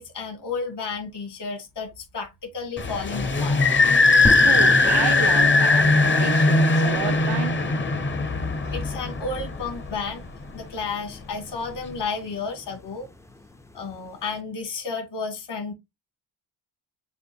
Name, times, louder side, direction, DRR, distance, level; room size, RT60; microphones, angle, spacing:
voice 1, 0.0-3.6 8.7-10.2 10.5-13.1 13.7-15.7, left 4 dB, 60° left, 2.4 m, -32 dB
sound 1, 2.8-10.1, left 3 dB, 25° left, 0.8 m, -20 dB
sound 2, 4.2-14.4, left 2 dB, 5° left, 0.4 m, -37 dB
voice 2, 4.4-7.7, right 14 dB, 70° right, 0.5 m, -31 dB
6.9 x 2.5 x 2.6 m
cardioid pair, 85°, 47 cm